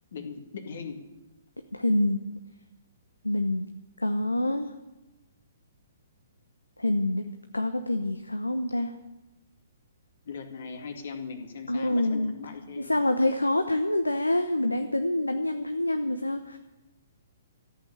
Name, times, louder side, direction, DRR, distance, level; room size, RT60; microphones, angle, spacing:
voice 1, 0.1-1.0 10.3-12.9, left 5 dB, 55° left, 5 dB, 2.2 m, -39 dB
voice 2, 1.7-2.2 3.2-3.6 4.0-4.7 6.8-7.3 7.5-8.9 11.7-12.3 12.8-16.6, left 1 dB, 85° left, 8 dB, 0.9 m, -26 dB
14.0 x 8.8 x 9.0 m, 1.0 s
figure-of-eight pair, 120°, 0 cm